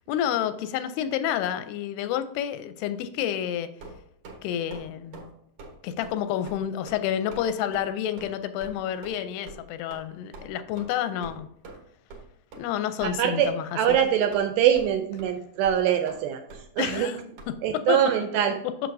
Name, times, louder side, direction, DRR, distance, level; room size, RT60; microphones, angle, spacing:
voice 1, 0.1-3.7 4.4-5.3 5.8-11.5 12.6-13.6 16.8-17.2 17.5-18.0, left 10 dB, 90° left, 11 dB, 2.6 m, -29 dB
sound 1, 3.8-4.4 4.7-4.9 5.1-5.3 5.6-5.7 6.0-6.2 6.5-6.6 6.9-7.0 7.3-7.5 7.7-7.8 8.2-8.3 8.6-8.7 9.0-9.2 9.5-9.6 9.9-10.0 10.3-10.4 10.8-10.9 11.2-11.4 11.6-11.8 12.1-12.2 12.5-12.6 13.0-13.1 13.4-13.6 13.9-14.4 14.7-14.9 15.2-15.3 15.6-15.8 16.1-16.2 16.5-16.6 16.9-17.1 17.4-17.5, right 3 dB, 65° right, 1.4 m, -43 dB
voice 2, 13.0-17.1 17.6-18.6, right 9 dB, 80° right, 7 dB, 2.2 m, -24 dB
7.8 x 6.6 x 2.6 m, 0.73 s
omnidirectional pair, 4.5 m